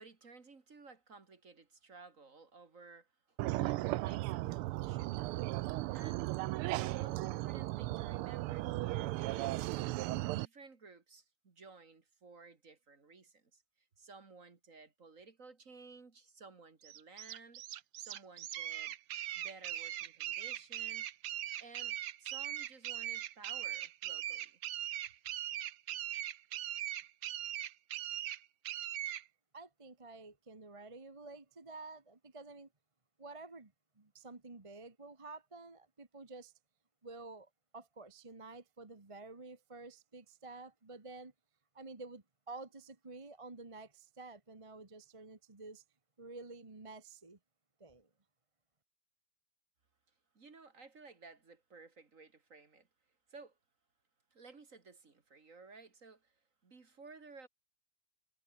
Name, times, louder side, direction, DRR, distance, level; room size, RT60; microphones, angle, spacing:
voice 1, 0.0-6.3 6.7-9.9 10.2-17.6 18.0-19.0 19.3-21.1 21.6-24.6 50.3-52.9 53.3-53.6 54.3-57.5, right 4 dB, 40° right, 2.3 m, -56 dB
sound 1, 3.4-10.5, right 18 dB, 90° right, 1.5 m, -36 dB
sound 2, 16.8-29.2, right 12 dB, 65° right, 1.5 m, -40 dB
voice 2, 29.5-32.7 33.2-36.5 37.0-41.3 41.7-45.8 46.2-47.4 47.8-48.1, right 3 dB, 15° right, 1.3 m, -50 dB
omnidirectional pair, 2.4 m